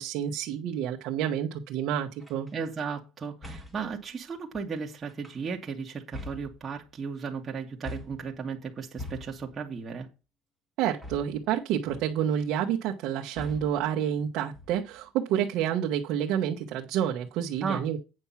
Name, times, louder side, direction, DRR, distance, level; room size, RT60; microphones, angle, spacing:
voice 1, 0.0-2.5 10.8-18.0, right 9 dB, 65° right, 1.3 m, -29 dB
sound 1, 2.2-2.5 3.4-3.9 5.1-5.6 6.1-7.0 7.8-8.4 9.0-9.6 11.0-11.6 11.9-12.3 13.4-13.9 14.5-15.1, left 2 dB, 5° left, 2.3 m, -43 dB
voice 2, 2.5-10.1 17.6-17.9, right 5 dB, 25° right, 1.8 m, -35 dB
8.9 x 5.9 x 5.8 m
cardioid pair, 140°, 0 cm